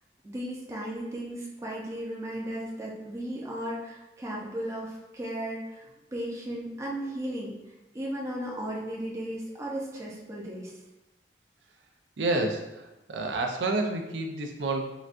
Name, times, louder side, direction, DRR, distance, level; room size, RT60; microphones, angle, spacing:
voice 1, 0.2-7.6 7.9-10.8, right 1 dB, 15° right, -4 dB, 0.4 m, -35 dB
voice 2, 12.2-14.9, right 2 dB, 90° right, 3 dB, 0.5 m, -29 dB
3.9 x 2.2 x 2.4 m, 0.99 s
head